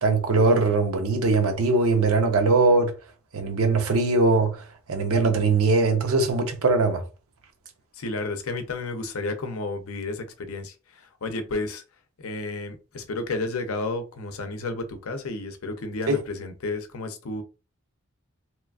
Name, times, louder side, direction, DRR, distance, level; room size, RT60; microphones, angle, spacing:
voice 1, 0.0-2.9 3.3-4.6 4.9-7.0 16.1-16.2, right 3 dB, 75° right, 0.7 m, -21 dB
voice 2, 7.9-11.8 12.2-17.4, left 2 dB, 75° left, 0.6 m, -32 dB
3.0 x 2.4 x 2.3 m
head